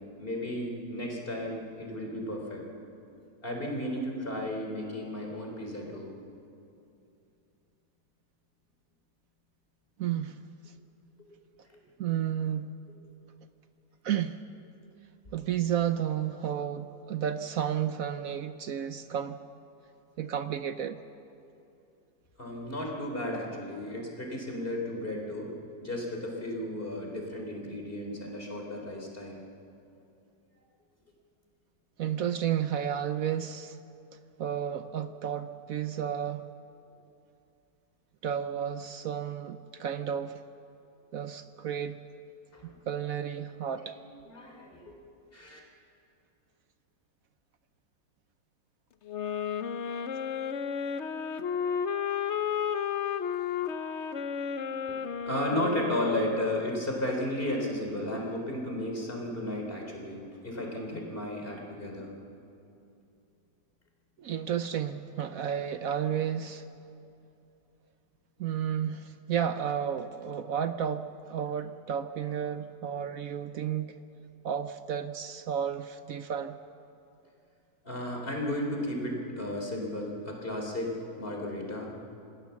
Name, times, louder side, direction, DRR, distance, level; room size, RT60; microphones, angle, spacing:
voice 1, 0.0-2.7 3.4-6.1 11.2-11.3 11.7-11.8 22.4-25.5 25.8-29.4 42.5-42.8 43.8-44.0 44.2-45.0 45.3-45.6 54.8-62.1 77.8-81.9, left 1 dB, 30° left, 0 dB, 4.2 m, -34 dB
voice 2, 10.0-10.4 12.0-12.8 14.0-14.4 15.3-19.4 20.2-21.0 32.0-33.8 34.4-36.5 38.2-40.4 41.1-42.0 42.9-43.9 64.2-66.7 68.4-74.0 74.4-76.6, right 9 dB, 60° right, 10 dB, 1.0 m, -32 dB
sound 1, 49.1-56.9, left 8 dB, 50° left, 0.9 m, -32 dB
27.5 x 19.0 x 7.2 m, 2.7 s
omnidirectional pair, 1.9 m